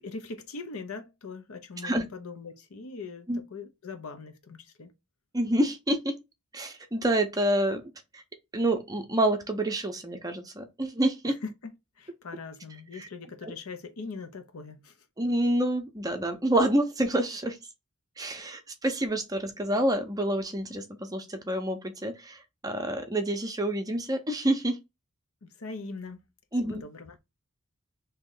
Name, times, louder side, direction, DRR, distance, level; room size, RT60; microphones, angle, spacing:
voice 1, 0.0-4.9 11.3-14.9 25.4-26.2 26.6-27.2, left 4 dB, 70° left, 0.7 m, -41 dB
voice 2, 5.3-6.1 6.5-7.8 8.1-8.2 8.5-11.3 12.9-13.1 13.4-13.5 15.2-17.6 18.2-24.8 26.5-26.8, right 1 dB, 15° right, 0.6 m, -28 dB
3.1 x 2.8 x 3.7 m
head